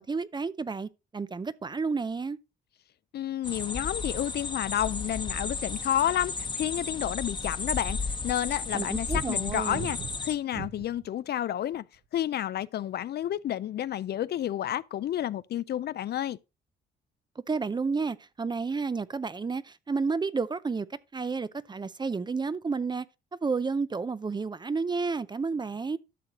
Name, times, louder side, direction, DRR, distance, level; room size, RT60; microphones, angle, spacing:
voice 1, 0.0-2.4 8.7-9.9 17.5-23.1 23.4-26.0, right 4 dB, 20° right, 0.5 m, -31 dB
voice 2, 3.1-8.0 8.2-11.8 12.1-16.4, left 11 dB, 55° left, 0.4 m, -30 dB
sound 1, 3.4-10.3, left 4 dB, 25° left, 1.0 m, -34 dB
sound 2, 9.1-11.1 11.7-12.2, right 8 dB, 60° right, 0.9 m, -40 dB
12.0 x 6.4 x 2.9 m
cardioid pair, 90°, 20 cm